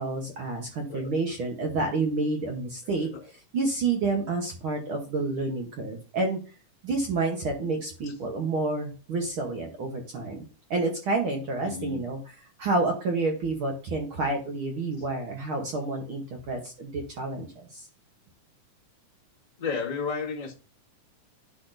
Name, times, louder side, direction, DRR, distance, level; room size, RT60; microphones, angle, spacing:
voice 1, 0.0-6.4 6.8-10.4 10.7-17.9, right 3 dB, 65° right, 1 dB, 1.3 m, -29 dB
voice 2, 11.6-12.0 19.6-20.5, left 5 dB, 30° left, -2 dB, 0.8 m, -32 dB
10.0 x 5.9 x 2.6 m, 0.36 s
omnidirectional pair, 3.8 m